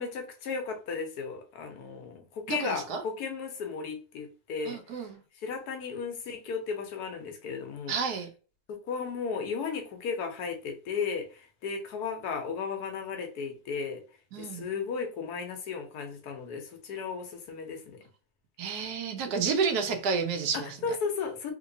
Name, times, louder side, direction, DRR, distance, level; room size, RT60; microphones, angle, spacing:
voice 1, 0.0-5.0 5.4-8.0 8.9-14.0 14.4-18.0 20.5-21.5, left 5 dB, 85° left, 1.3 m, -35 dB
voice 2, 2.5-3.0 4.7-5.2 7.9-8.3 14.3-14.6 18.6-20.7, right 5 dB, 90° right, 1.3 m, -30 dB
3.3 x 2.9 x 2.6 m
omnidirectional pair, 1.6 m